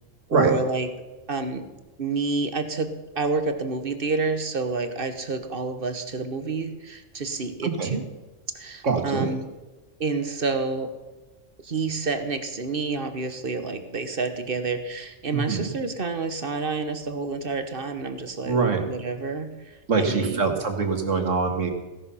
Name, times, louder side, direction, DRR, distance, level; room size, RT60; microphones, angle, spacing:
voice 1, 0.3-0.9 1.3-1.7 2.0-8.0 8.5-9.5 10.0-10.9 11.6-19.5 20.0-20.5, right 4 dB, 45° right, 9 dB, 1.3 m, -29 dB
voice 2, 7.6-8.0 8.8-9.3 15.3-15.7 18.5-18.8 19.9-21.7, right 4 dB, 75° right, 5 dB, 2.1 m, -24 dB
16.0 x 11.0 x 5.6 m, 1.2 s
omnidirectional pair, 1.3 m